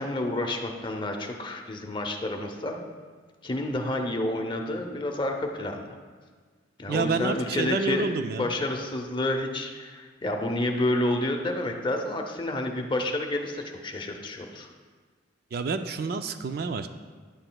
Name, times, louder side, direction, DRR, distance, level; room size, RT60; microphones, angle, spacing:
voice 1, 0.0-2.8 3.4-6.0 6.8-14.7, left 1 dB, 25° left, 3 dB, 0.7 m, -29 dB
voice 2, 6.9-8.5 15.5-16.9, right 4 dB, 55° right, 9 dB, 0.4 m, -29 dB
10.0 x 7.8 x 2.3 m, 1.5 s
head